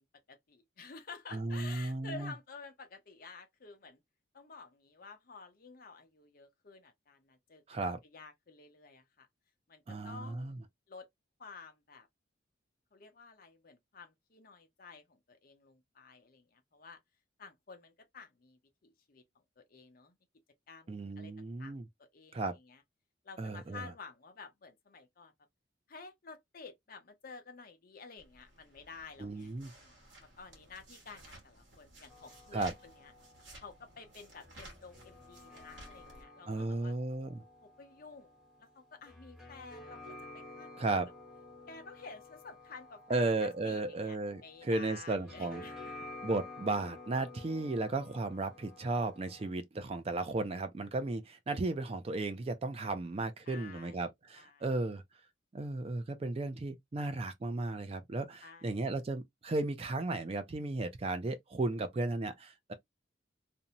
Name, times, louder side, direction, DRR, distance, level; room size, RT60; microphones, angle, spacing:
voice 1, 0.0-4.0 4.3-9.3 9.7-10.6 10.9-11.1 11.4-12.1 12.9-17.0 17.4-20.2 20.7-22.8 23.2-25.3 25.9-33.1 33.6-36.9 37.6-40.0 40.3-41.1 41.7-45.9 53.4-54.1 54.3-54.7 58.4-59.0, left 4 dB, 50° left, 0.6 m, -52 dB
voice 2, 1.3-2.3 7.7-8.0 9.9-10.6 20.9-21.8 22.3-22.5 23.4-23.8 29.2-29.7 32.5-32.7 36.5-37.4 40.8-41.1 43.1-45.6 46.2-55.0 55.5-62.7, right 2 dB, 30° right, 0.4 m, -35 dB
sound 1, 28.2-36.2, right 1 dB, 70° right, 1.1 m, -56 dB
sound 2, 32.1-49.5, left 2 dB, ahead, 1.0 m, -52 dB
2.6 x 2.1 x 2.7 m
head